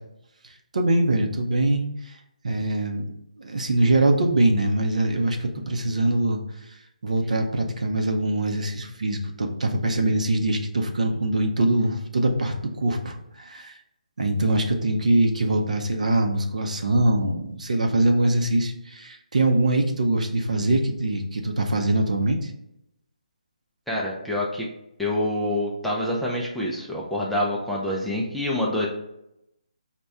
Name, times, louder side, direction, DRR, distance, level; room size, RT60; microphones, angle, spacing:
voice 1, 0.7-2.2 2.4-3.0 3.4-6.4 7.0-13.7 14.2-22.5, right 2 dB, 65° right, 3 dB, 0.5 m, -23 dB
voice 2, 23.9-24.7 25.0-28.9, left 1 dB, ahead, -5 dB, 0.4 m, -26 dB
4.1 x 2.2 x 3.4 m, 0.83 s
figure-of-eight pair, 145°, 4 cm